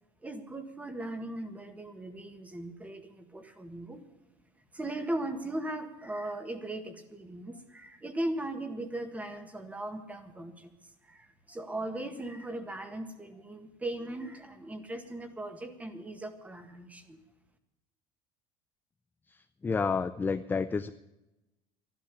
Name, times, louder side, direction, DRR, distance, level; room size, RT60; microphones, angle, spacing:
voice 1, 0.2-4.0 4.7-10.7 11.1-17.2, right 1 dB, 10° right, 8 dB, 1.7 m, -38 dB
voice 2, 19.3-20.9, left 5 dB, 15° left, 10 dB, 0.4 m, -30 dB
13.0 x 11.5 x 8.4 m, 0.99 s
supercardioid pair, 125°, 14 cm